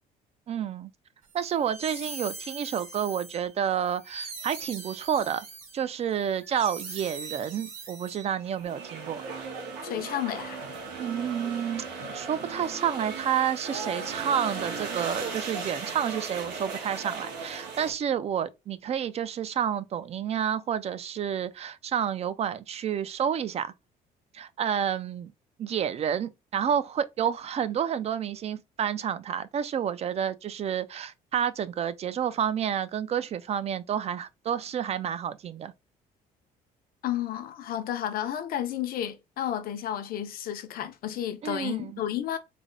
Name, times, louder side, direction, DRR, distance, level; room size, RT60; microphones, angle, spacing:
voice 1, 0.5-0.9 1.3-5.5 5.7-9.2 11.0-23.7 24.3-25.3 25.6-35.7 41.4-42.0, right 8 dB, 40° right, 0.3 m, -30 dB
sound 1, 1.4-8.6, right 3 dB, 60° right, 1.6 m, -42 dB
sound 2, 8.4-17.9, right 4 dB, 85° right, 1.2 m, -37 dB
voice 2, 9.8-10.7 37.0-42.4, left 11 dB, 60° left, 0.6 m, -32 dB
3.3 x 2.1 x 3.7 m
cardioid pair, 110°, 17 cm